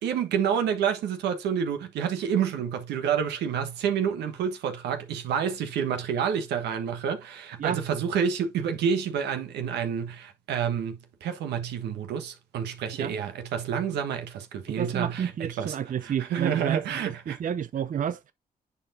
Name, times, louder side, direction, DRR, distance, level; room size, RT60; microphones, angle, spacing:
voice 1, 0.0-15.8 16.0-17.4, right 7 dB, 80° right, 1.3 m, -29 dB
voice 2, 14.7-18.3, right 8 dB, 50° right, 0.6 m, -31 dB
9.9 x 4.7 x 2.6 m
hypercardioid pair, 40°, 17 cm